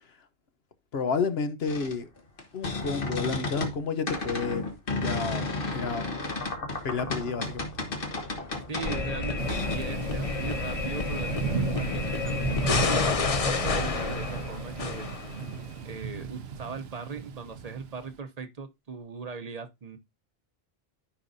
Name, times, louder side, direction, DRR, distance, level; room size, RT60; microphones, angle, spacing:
voice 1, 0.9-2.1 2.5-4.6 5.0-5.5 5.7-6.0 6.8-7.6, left 5 dB, 75° left, 1.2 m, -30 dB
sound 1, 1.7-3.8 4.1-9.8, left 3 dB, 60° left, 1.6 m, -33 dB
voice 2, 8.7-13.1 13.6-15.1 15.8-20.0, right 5 dB, 40° right, 0.9 m, -39 dB
sound 2, 8.8-15.7, left 4 dB, 40° left, 0.7 m, -29 dB
Thunder / Rain, 9.4-18.2, right 6 dB, 75° right, 0.9 m, -36 dB
13.0 x 5.2 x 2.7 m
omnidirectional pair, 1.0 m